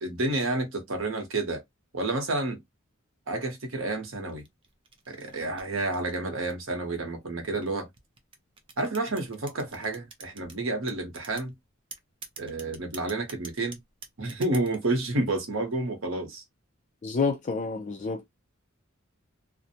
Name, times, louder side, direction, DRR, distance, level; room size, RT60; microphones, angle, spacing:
voice 1, 0.0-1.6 1.9-2.6 3.3-4.4 5.1-7.9 8.8-11.5 12.4-13.8 14.2-16.4, right 2 dB, 70° right, 0.9 m, -30 dB
sound 1, 4.3-6.8 7.4-10.6 10.9-11.5 11.9-14.9, right 5 dB, 25° right, 0.5 m, -46 dB
voice 2, 17.0-18.3, left 4 dB, 35° left, 0.4 m, -28 dB
2.5 x 2.1 x 2.7 m
head